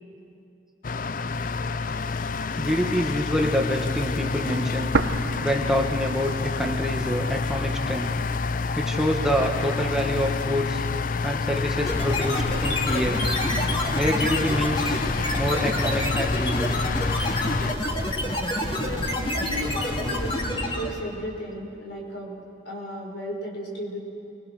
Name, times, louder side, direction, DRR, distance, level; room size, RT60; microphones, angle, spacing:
sound 1, 0.8-17.7, left 4 dB, 45° left, 0.4 m, -28 dB
voice 1, 2.6-4.9 5.4-8.1 8.7-10.8 11.2-13.2 13.9-15.0 15.3-16.7, equal, 5° right, 0 dB, 1.4 m, -26 dB
sound 2, 4.9-6.9 7.2-7.3 8.0-8.9, right 3 dB, 80° right, 0.8 m, -30 dB
sound 3, 11.9-21.0, left 1 dB, 30° left, 2.3 m, -28 dB
voice 2, 18.6-24.0, equal, 65° left, -1 dB, 5.8 m, -35 dB
29.0 x 22.0 x 6.5 m, 2.7 s
head